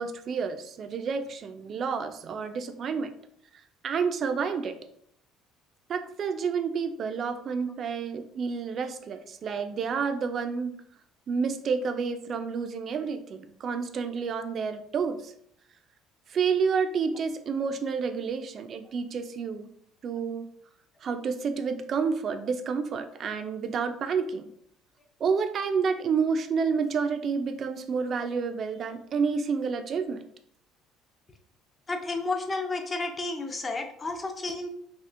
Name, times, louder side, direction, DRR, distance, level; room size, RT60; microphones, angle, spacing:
voice 1, 0.0-3.1 3.8-4.8 5.9-10.8 11.3-15.3 16.3-19.7 20.0-20.5 21.0-24.5 25.2-30.2, right 5 dB, 40° right, 8 dB, 0.3 m, -29 dB
voice 2, 31.9-34.7, left 3 dB, 25° left, 5 dB, 0.4 m, -31 dB
3.5 x 2.4 x 2.4 m, 0.67 s
cardioid pair, 125°, 0 cm